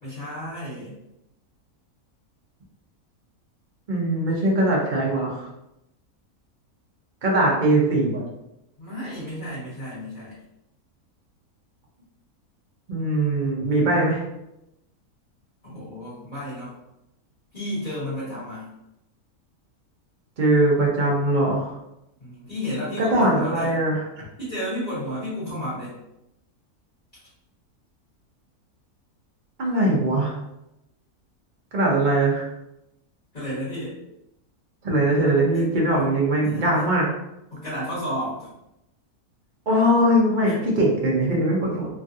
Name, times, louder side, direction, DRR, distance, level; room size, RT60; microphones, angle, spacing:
voice 1, 0.0-1.0 8.8-10.3 15.6-16.8 17.5-18.7 22.2-23.8 24.4-25.9 33.3-34.0 35.5-35.6 35.9-36.0 36.4-36.8 37.5-38.5 40.4-40.5, equal, 35° left, -12 dB, 1.5 m, -32 dB
voice 2, 3.9-5.5 7.2-8.2 12.9-14.2 20.4-21.7 23.0-24.2 29.6-30.3 31.7-32.5 34.8-37.0 39.7-41.9, right 1 dB, 50° right, -2 dB, 0.6 m, -21 dB
3.1 x 2.4 x 2.6 m, 0.88 s
omnidirectional pair, 1.6 m